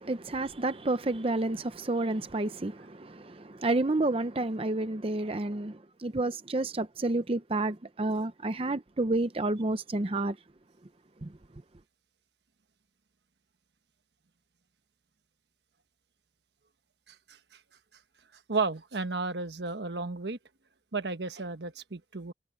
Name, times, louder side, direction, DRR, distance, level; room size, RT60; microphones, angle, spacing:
voice 1, 0.0-10.4 11.2-11.3, right 2 dB, 30° right, 0.7 m, -30 dB
voice 2, 18.5-20.4 20.9-22.3, right 3 dB, 75° right, 1.3 m, -33 dB
head